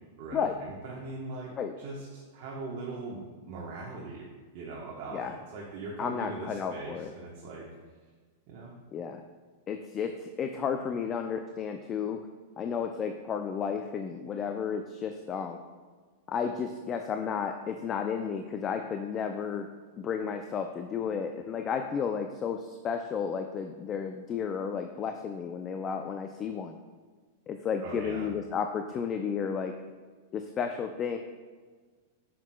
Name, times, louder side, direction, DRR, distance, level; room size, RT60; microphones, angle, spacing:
voice 1, 0.2-3.2 3.5-4.3 4.5-7.7 8.5-8.8 27.8-28.3, right 3 dB, 50° right, -3 dB, 1.1 m, -40 dB
voice 2, 6.0-7.1 8.9-9.2 9.7-12.2 12.6-15.6 16.3-19.7 20.0-26.8 27.5-29.7 30.3-31.2, left 6 dB, 30° left, 6 dB, 0.4 m, -32 dB
7.0 x 6.0 x 2.3 m, 1.5 s
hypercardioid pair, 115°, 0 cm